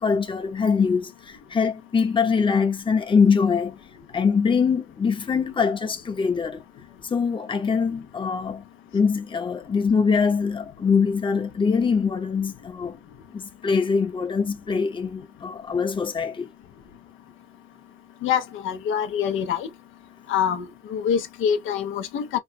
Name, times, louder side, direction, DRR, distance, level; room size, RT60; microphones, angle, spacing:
voice 1, 0.0-3.8 4.1-6.6 7.1-8.6 8.9-13.0 13.3-16.5, left 5 dB, 25° left, 0.8 m, -23 dB
voice 2, 18.2-19.7 20.3-22.4, left 8 dB, 80° left, 0.7 m, -25 dB
3.1 x 2.3 x 2.7 m
cardioid pair, 90°, 20 cm